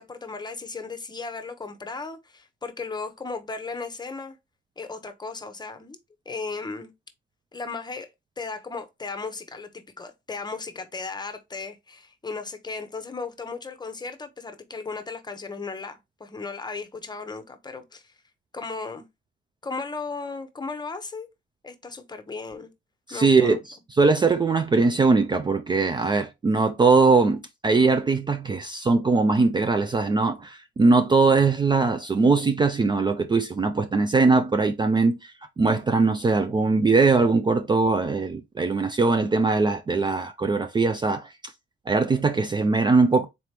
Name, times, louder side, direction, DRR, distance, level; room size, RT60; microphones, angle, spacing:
voice 1, 0.0-4.4 4.8-6.0 6.3-6.9 7.5-8.1 8.4-18.1 18.5-19.1 19.6-21.3 21.6-22.7 23.1-23.6, left 4 dB, 20° left, 0.8 m, -36 dB
voice 2, 23.1-23.6 24.0-41.3 41.9-43.3, right 4 dB, 25° right, 0.4 m, -21 dB
4.0 x 2.9 x 3.3 m
cardioid pair, 90°, 20 cm